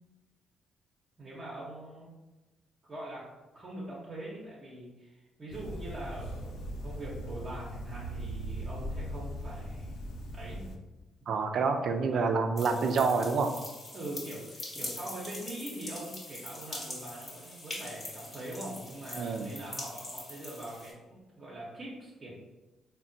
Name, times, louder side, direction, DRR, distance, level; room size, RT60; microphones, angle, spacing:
voice 1, 1.2-2.1 2.9-3.3 3.5-10.0 10.3-10.7 12.1-12.4 13.9-22.3, right 1 dB, 35° right, -7 dB, 0.7 m, -43 dB
sound 1, 5.5-10.8, equal, 80° left, 0.4 m, -39 dB
voice 2, 11.3-13.5 19.2-19.5, right 4 dB, 60° right, 5 dB, 0.3 m, -28 dB
sound 2, 12.6-20.9, left 1 dB, 35° left, 1.1 m, -43 dB
3.5 x 2.1 x 2.6 m, 1.1 s
cardioid pair, 90°, 0 cm